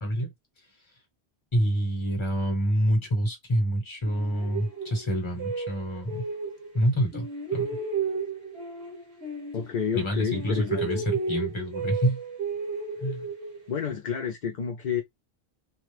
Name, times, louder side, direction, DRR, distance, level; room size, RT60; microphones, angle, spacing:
voice 1, 1.5-6.3 6.7-7.3 7.5-7.7 9.9-12.2 13.0-13.3, equal, 30° left, 1.1 m, -27 dB
sound 1, 4.1-6.8 7.1-10.1 10.3-13.9, right 4 dB, 75° right, 1.3 m, -33 dB
voice 2, 9.5-11.0 13.7-15.0, left 7 dB, 55° left, 0.7 m, -30 dB
3.0 x 2.2 x 3.3 m
omnidirectional pair, 1.0 m